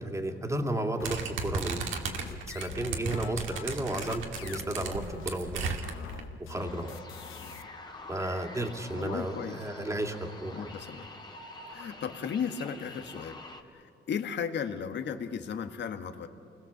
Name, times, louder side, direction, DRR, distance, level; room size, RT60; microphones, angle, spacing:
voice 1, 0.0-1.9 2.3-5.8 6.5-7.0 8.1-10.7, right 1 dB, 15° right, 3 dB, 2.6 m, -33 dB
sound 1, 1.0-7.6, left 10 dB, 85° left, 0.8 m, -44 dB
sound 2, 1.0-6.2, right 5 dB, 75° right, 2.2 m, -35 dB
sound 3, 6.5-13.6, left 2 dB, 20° left, 2.2 m, -46 dB
voice 2, 8.9-9.6 10.5-11.1 11.7-13.4 13.7-16.3, left 7 dB, 65° left, 8 dB, 1.6 m, -35 dB
28.0 x 21.0 x 7.2 m, 2.5 s
cardioid pair, 90°, 20 cm